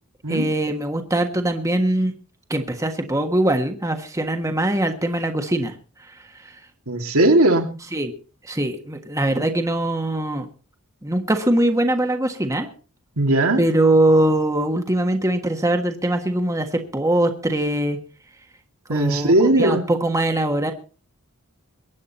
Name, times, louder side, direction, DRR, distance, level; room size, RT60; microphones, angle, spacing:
voice 1, 0.3-2.1 2.5-5.7 6.4-6.5 7.9-8.1 8.4-10.5 11.0-12.7 13.6-18.0 18.9-20.7, right 1 dB, 15° right, 5 dB, 1.4 m, -22 dB
voice 2, 6.9-7.7 13.2-13.6 18.9-19.8, right 1 dB, 75° right, 5 dB, 2.4 m, -18 dB
23.0 x 9.7 x 4.2 m, 0.35 s
head